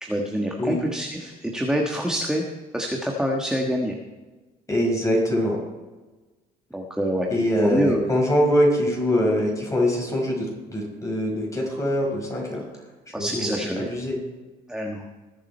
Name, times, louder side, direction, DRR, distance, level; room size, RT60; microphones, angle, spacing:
voice 1, 0.0-2.4 2.7-3.9 6.7-7.3 7.6-8.0 13.1-13.9 14.7-15.0, equal, 5° right, 0 dB, 1.4 m, -26 dB
voice 2, 4.7-5.6 7.3-12.7 13.1-14.2, equal, 20° left, -1 dB, 5.2 m, -23 dB
20.5 x 7.6 x 4.4 m, 1.2 s
cardioid pair, 110°, 17 cm